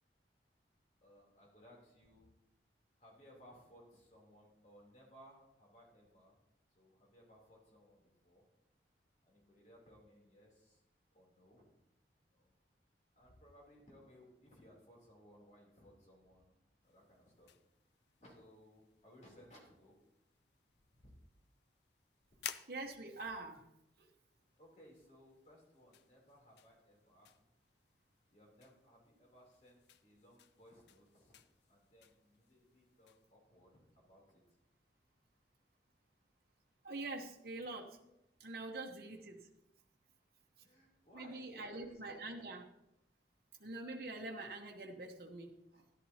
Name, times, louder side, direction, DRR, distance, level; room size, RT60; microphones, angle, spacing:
voice 1, 1.0-2.3 3.0-6.4 6.7-8.4 9.2-10.8 11.1-11.7 12.2-12.5 13.1-16.6 16.8-17.5 18.2-19.9 24.6-27.3 28.3-31.4 31.7-34.4 40.6-42.4, equal, 40° left, -2 dB, 3.2 m, -62 dB
sound 1, 16.8-33.3, left 10 dB, 75° left, 0.5 m, -57 dB
voice 2, 22.7-23.6 24.0-24.1 36.8-38.0 38.4-39.4 41.1-42.6 43.6-45.8, right 2 dB, 55° right, 1 dB, 1.0 m, -45 dB
13.5 x 11.5 x 2.8 m, 0.85 s
head